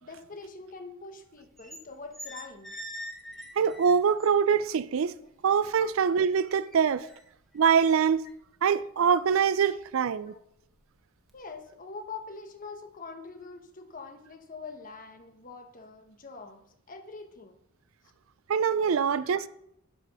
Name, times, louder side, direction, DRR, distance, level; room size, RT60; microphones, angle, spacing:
voice 1, 0.0-2.8 5.8-5.9 9.6-9.8 10.3-10.4 11.3-17.5 18.9-19.0 19.3-19.4, left 4 dB, 40° left, 1.1 m, -44 dB
sound 1, 1.4-1.8 2.1-4.6 5.0-6.0 6.3-9.4 9.9-10.1 10.5-10.9 11.3-11.5, equal, ahead, 1.1 m, -45 dB
voice 2, 3.6-5.1 5.4-7.0 7.5-8.2 8.6-10.3 18.5-19.5, right 7 dB, 75° right, 0.4 m, -24 dB
10.5 x 5.1 x 5.4 m
head